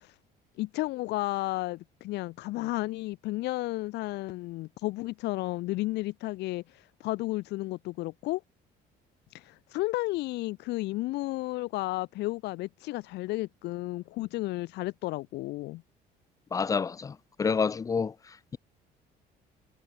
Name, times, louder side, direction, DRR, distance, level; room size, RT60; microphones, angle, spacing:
voice 1, 0.6-6.6 7.0-8.4 9.3-15.8, left 19 dB, 80° left, 3.7 m, -32 dB
voice 2, 16.5-18.1, left 5 dB, 20° left, 0.7 m, -28 dB
cardioid pair, 175°, 17 cm